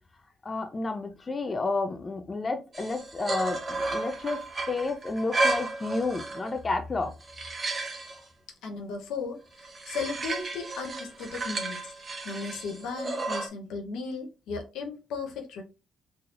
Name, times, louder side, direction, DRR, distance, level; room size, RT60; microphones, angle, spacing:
voice 1, 0.4-4.4 4.7-7.1, left 3 dB, 30° left, 0.5 m, -31 dB
sound 1, 2.7-6.6 7.0-8.2 9.6-13.5, right 2 dB, 35° right, 0.9 m, -33 dB
voice 2, 8.6-9.4 9.9-11.9 12.2-15.6, left 4 dB, 85° left, 0.9 m, -36 dB
3.8 x 2.8 x 2.5 m
cardioid pair, 90°, 0 cm